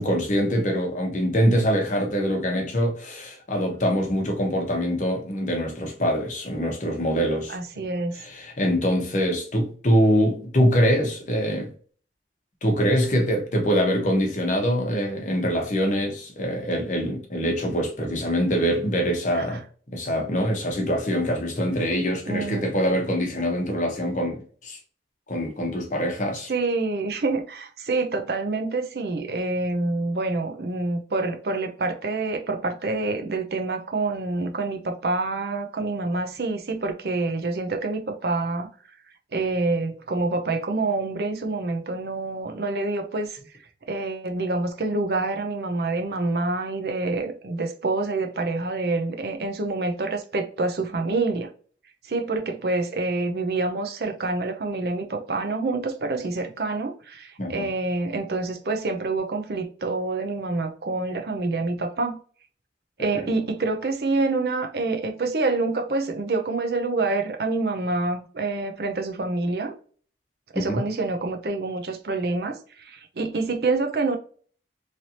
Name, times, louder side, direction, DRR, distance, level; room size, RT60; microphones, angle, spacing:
voice 1, 0.0-7.9 8.2-11.7 12.6-19.6 19.9-24.8 25.3-26.5 57.4-57.7 63.1-63.3 70.5-70.8, equal, 45° left, 0.9 m, -24 dB
voice 2, 7.5-8.2 19.3-19.4 22.3-22.7 26.5-38.7 39.3-43.4 43.9-51.5 52.1-62.2 63.0-69.7 70.5-74.2, right 3 dB, 60° right, 0.5 m, -27 dB
3.2 x 2.7 x 2.8 m
head